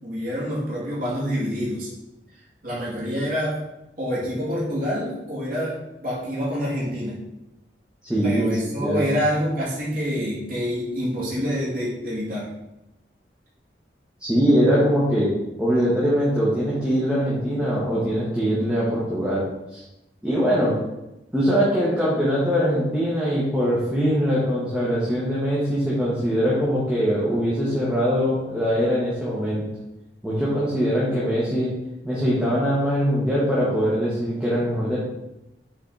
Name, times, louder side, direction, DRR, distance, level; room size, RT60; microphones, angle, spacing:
voice 1, 0.0-1.9 2.6-3.6 4.0-5.8 6.0-7.1 8.2-12.5, equal, 55° right, -7 dB, 2.3 m, -27 dB
voice 2, 8.0-9.0 14.2-15.3 15.6-19.4 19.7-19.8 20.2-20.7 21.3-29.6 30.2-31.7 32.0-35.0, equal, 5° right, -8 dB, 1.4 m, -22 dB
7.1 x 4.2 x 4.0 m, 0.93 s
head